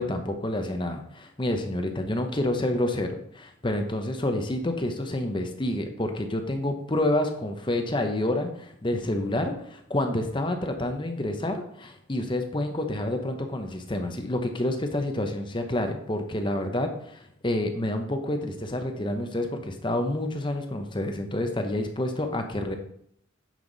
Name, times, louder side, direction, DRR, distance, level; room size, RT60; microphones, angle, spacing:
voice 1, 0.0-22.8, left 1 dB, 25° left, 5 dB, 0.8 m, -28 dB
9.2 x 5.8 x 3.9 m, 0.70 s
head